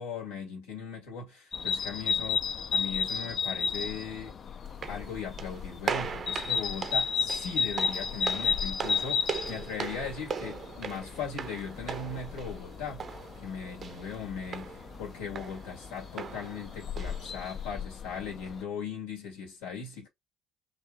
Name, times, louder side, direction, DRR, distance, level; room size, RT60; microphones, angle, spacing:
voice 1, 0.0-4.4 4.9-13.1 13.4-20.1, left 5 dB, 85° left, 1.9 m, -39 dB
sound 1, 1.5-18.6, left 6 dB, 50° left, 0.6 m, -34 dB
sound 2, 4.7-17.7, right 6 dB, 50° right, 0.7 m, -40 dB
4.8 x 2.7 x 3.4 m
hypercardioid pair, 60°, 0 cm